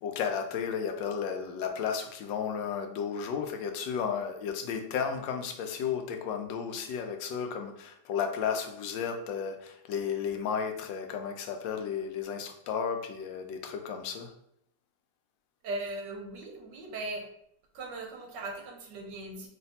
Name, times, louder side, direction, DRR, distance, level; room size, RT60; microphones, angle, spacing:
voice 1, 0.0-14.3, left 7 dB, 80° left, 5 dB, 1.2 m, -33 dB
voice 2, 15.6-17.2 17.7-19.5, right 2 dB, 70° right, 2 dB, 1.2 m, -38 dB
3.2 x 2.5 x 4.0 m, 0.73 s
omnidirectional pair, 2.1 m